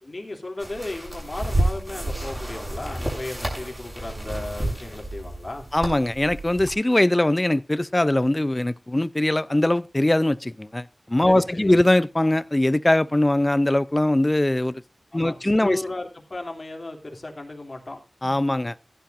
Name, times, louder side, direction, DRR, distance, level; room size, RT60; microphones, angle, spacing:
voice 1, 0.0-5.6 11.2-11.8 15.1-18.0, left 2 dB, 45° left, 3.0 m, -35 dB
sound 1, 0.6-6.7, right 1 dB, 20° right, 6.9 m, -30 dB
voice 2, 5.7-14.8 15.1-15.8 18.2-18.8, left 1 dB, 25° left, 0.5 m, -21 dB
16.0 x 11.5 x 2.6 m
wide cardioid pair, 55°, 0 cm